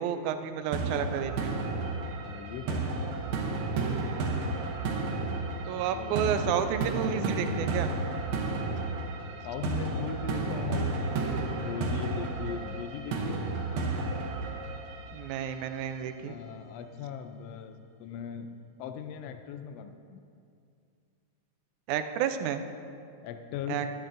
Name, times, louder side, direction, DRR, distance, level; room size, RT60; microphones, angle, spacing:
voice 1, 0.0-1.6 5.7-7.9 15.1-16.4 21.9-22.6 23.7-23.9, right 8 dB, 90° right, 9 dB, 2.0 m, -31 dB
sound 1, 0.7-15.7, right 3 dB, 75° right, 2.1 m, -32 dB
voice 2, 2.1-2.8 5.1-6.2 9.4-10.9 11.5-13.5 16.2-20.2 23.2-23.9, left 8 dB, 85° left, 8 dB, 1.4 m, -39 dB
12.0 x 10.5 x 2.6 m, 2.4 s
omnidirectional pair, 3.4 m